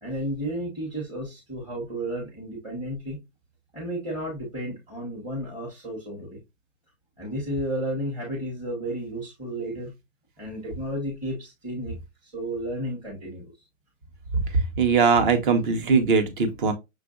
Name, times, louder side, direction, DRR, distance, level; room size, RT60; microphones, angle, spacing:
voice 1, 0.0-3.2 3.7-6.4 7.2-9.9 10.4-12.0 12.2-13.5, right 1 dB, 10° right, 1.0 m, -32 dB
voice 2, 14.5-16.7, right 5 dB, 40° right, 1.0 m, -21 dB
6.2 x 2.5 x 2.4 m
hypercardioid pair, 145°, 40 cm